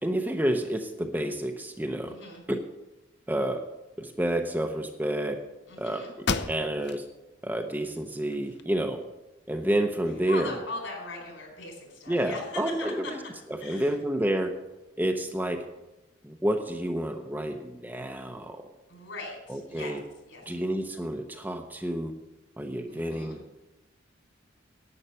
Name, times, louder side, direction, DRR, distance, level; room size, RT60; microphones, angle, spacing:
voice 1, 0.0-2.2 2.5-2.6 3.3-3.6 4.0-5.4 5.8-7.1 7.4-9.0 9.5-10.5 12.1-13.2 13.6-14.6 15.0-15.6 16.2-18.7 19.5-20.0 20.5-22.1 22.6-23.4, right 1 dB, 10° right, 4 dB, 0.7 m, -29 dB
voice 2, 2.1-2.4 5.7-6.1 10.3-13.1 13.6-14.0 18.9-20.0 20.3-20.6 22.9-23.4, left 3 dB, 70° left, 1 dB, 4.5 m, -40 dB
sound 1, 5.7-5.8 6.2-7.1 7.5-7.6 8.2-9.1, left 4 dB, 55° left, 0.7 m, -33 dB
11.0 x 8.8 x 6.9 m, 1.0 s
head